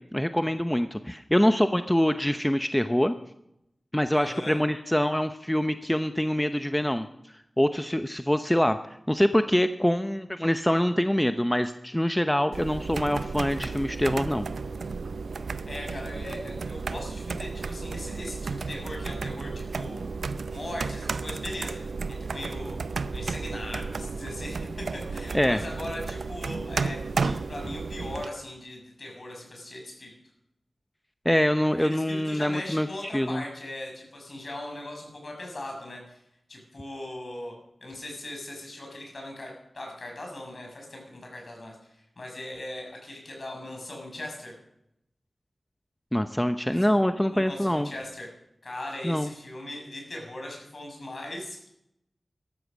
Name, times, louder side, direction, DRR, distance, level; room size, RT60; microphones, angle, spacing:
voice 1, 0.1-3.1 3.9-7.1 7.6-8.8 9.1-14.5 25.3-25.6 31.2-33.4 46.1-47.9 49.0-49.3, equal, 10° left, 9 dB, 0.8 m, -24 dB
voice 2, 4.1-4.6 15.7-20.0 20.5-22.8 23.1-30.1 31.8-36.2 36.5-37.5 37.8-44.5 46.7-47.0 47.3-48.3 48.6-51.8, left 1 dB, 60° left, 1 dB, 6.2 m, -39 dB
sound 1, 12.5-28.3, right 4 dB, 90° right, 0.6 m, -33 dB
14.0 x 12.5 x 6.2 m, 0.79 s
cardioid pair, 45°, 0 cm